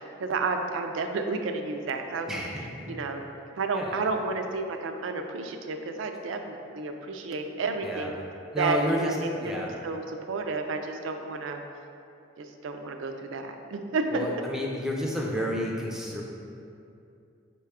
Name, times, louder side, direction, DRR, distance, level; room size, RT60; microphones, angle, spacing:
voice 1, 0.2-2.3 2.9-3.2 3.6-8.1 8.6-11.6 12.4-14.3, right 3 dB, 85° right, 5 dB, 0.4 m, -31 dB
voice 2, 2.3-2.9 3.7-4.0 7.8-8.1 8.5-9.7 14.1-16.2, equal, 5° right, -2 dB, 0.4 m, -30 dB
4.8 x 2.2 x 4.7 m, 2.6 s
head